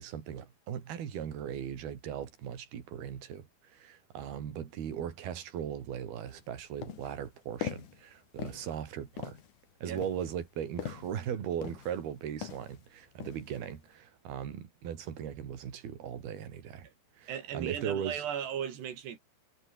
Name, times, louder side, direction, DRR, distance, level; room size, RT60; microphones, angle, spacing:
voice 1, 0.0-9.4 9.8-16.9 17.2-18.2, right 9 dB, 70° right, 4.8 m, -38 dB
sound 1, 6.3-6.4 6.8-7.2 7.6-8.0 8.4-8.8 9.2-9.5 10.0-11.2 11.6-12.1 12.4-12.8 13.2-13.6, left 9 dB, 55° left, 3.1 m, -41 dB
voice 2, 17.3-19.2, right 9 dB, 85° right, 5.1 m, -36 dB
omnidirectional pair, 4.7 m